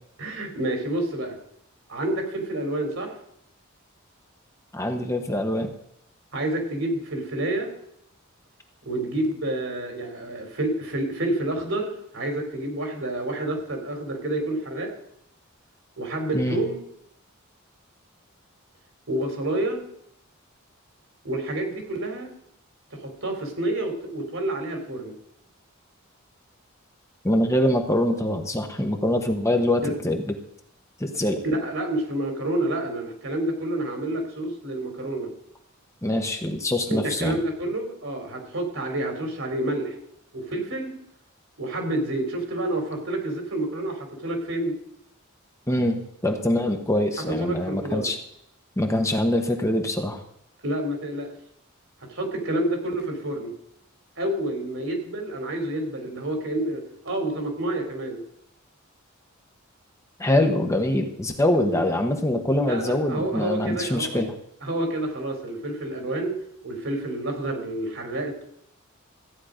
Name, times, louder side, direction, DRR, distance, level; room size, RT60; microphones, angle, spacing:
voice 1, 0.2-1.3 1.9-3.1 6.3-7.7 8.8-14.9 16.0-16.8 19.1-19.8 21.2-22.3 22.9-25.1 29.8-29.9 31.4-35.3 36.9-39.9 40.3-40.9 41.6-44.8 47.4-48.1 50.6-51.3 52.1-53.5 54.2-58.2 61.7-61.9 62.6-64.2 64.6-66.4 66.6-68.4, right 1 dB, 65° right, 3 dB, 3.4 m, -28 dB
voice 2, 4.7-5.7 16.3-16.6 27.2-30.3 31.0-31.4 36.0-37.4 45.7-48.2 48.8-50.2 60.2-64.3, left 1 dB, 15° left, 4 dB, 1.1 m, -24 dB
14.5 x 9.4 x 5.1 m, 0.74 s
head